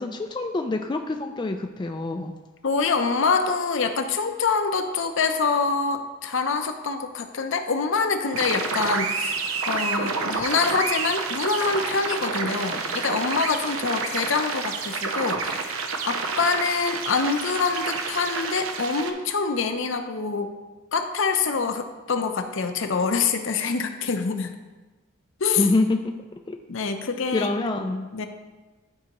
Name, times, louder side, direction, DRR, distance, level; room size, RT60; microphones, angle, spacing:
voice 1, 0.0-2.3 25.6-26.1 26.5-26.6 27.3-28.1, left 2 dB, 20° left, 4 dB, 0.3 m, -26 dB
voice 2, 2.6-20.5 20.9-24.5 25.4-25.7 26.7-27.5 28.1-28.3, left 4 dB, 65° left, 7 dB, 0.6 m, -25 dB
sound 1, 8.3-19.1, right 4 dB, 85° right, 0.7 m, -29 dB
12.0 x 4.7 x 3.0 m, 1.3 s
head